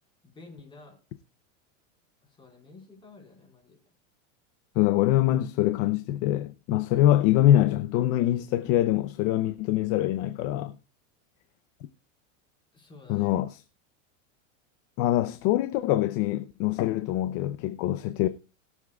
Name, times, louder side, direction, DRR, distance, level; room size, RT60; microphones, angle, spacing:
voice 1, 0.2-1.0 2.2-3.8 12.7-13.3, left 3 dB, 10° left, 4.4 m, -50 dB
voice 2, 4.8-10.7 13.1-13.5 15.0-18.3, left 13 dB, 35° left, 0.6 m, -24 dB
21.0 x 7.3 x 2.3 m
supercardioid pair, 155°, 38 cm